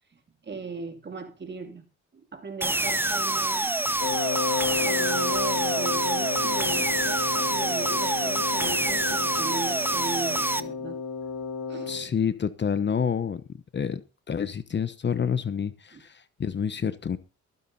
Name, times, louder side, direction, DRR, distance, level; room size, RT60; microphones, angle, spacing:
voice 1, 0.1-1.8 2.1-3.8 4.8-11.0 11.7-11.9 15.9-16.0, right 4 dB, 35° right, 2.8 m, -38 dB
sound 1, 2.6-10.6, right 1 dB, 5° right, 0.9 m, -26 dB
Wind instrument woodwind instrument, 4.0-12.1, left 5 dB, 65° left, 2.2 m, -32 dB
voice 2, 11.9-13.4 13.7-14.0 14.3-17.2, left 7 dB, 35° left, 1.0 m, -28 dB
23.0 x 9.6 x 2.8 m
cardioid pair, 90°, 30 cm